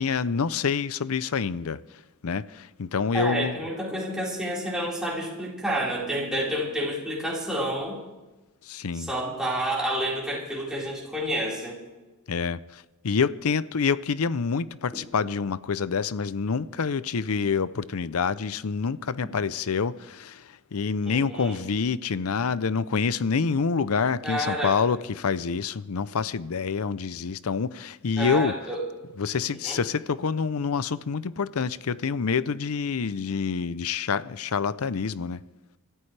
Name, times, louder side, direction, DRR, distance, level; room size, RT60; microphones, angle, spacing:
voice 1, 0.0-1.8 2.2-3.6 8.6-9.1 12.3-28.5 29.2-35.4, left 5 dB, 75° left, 0.6 m, -27 dB
voice 2, 3.1-8.0 8.9-11.8 21.1-21.6 24.2-24.7 28.2-28.8 29.6-29.8, right 1 dB, 5° right, 4.6 m, -29 dB
26.5 x 13.5 x 3.3 m
head